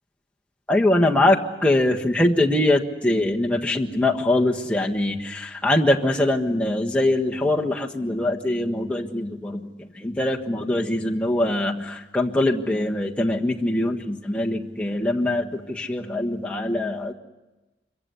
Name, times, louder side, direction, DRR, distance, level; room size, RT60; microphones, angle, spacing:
voice 1, 0.7-17.1, left 1 dB, 5° left, 0 dB, 1.4 m, -23 dB
26.0 x 23.5 x 8.3 m, 1.1 s
head